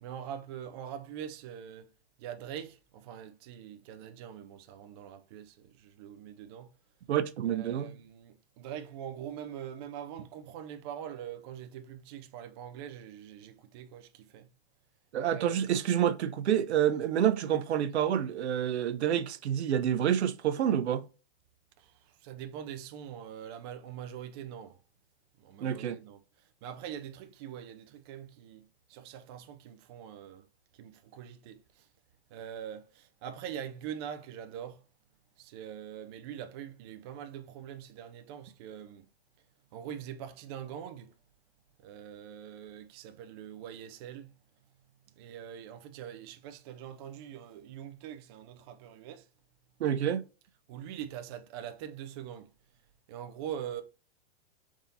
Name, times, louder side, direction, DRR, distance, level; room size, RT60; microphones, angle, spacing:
voice 1, 0.0-1.9 2.2-6.7 7.5-14.5 15.3-15.7 21.8-24.8 25.4-30.5 30.7-31.9 32.3-34.8 35.4-39.1 39.7-41.1 41.8-44.4 45.1-49.3 50.7-52.5 53.1-53.8, right 9 dB, 25° right, 0.3 m, -43 dB
voice 2, 7.1-7.9 15.1-21.0 25.6-26.0 49.8-50.2, right 10 dB, 80° right, 0.6 m, -28 dB
5.2 x 3.6 x 2.7 m
hypercardioid pair, 140°, 32 cm